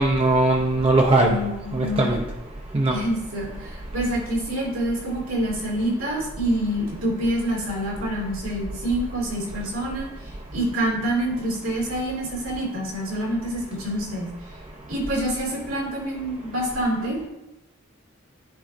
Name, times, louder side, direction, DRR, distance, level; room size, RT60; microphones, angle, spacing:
voice 1, 0.0-1.4 1.7-2.2 2.7-2.9, right 2 dB, 30° right, 0 dB, 0.4 m, -19 dB
voice 2, 1.2-2.2 2.9-10.1 10.5-14.3 14.9-17.3, right 1 dB, 90° right, -3 dB, 2.4 m, -27 dB
10.0 x 4.0 x 2.6 m, 0.93 s
head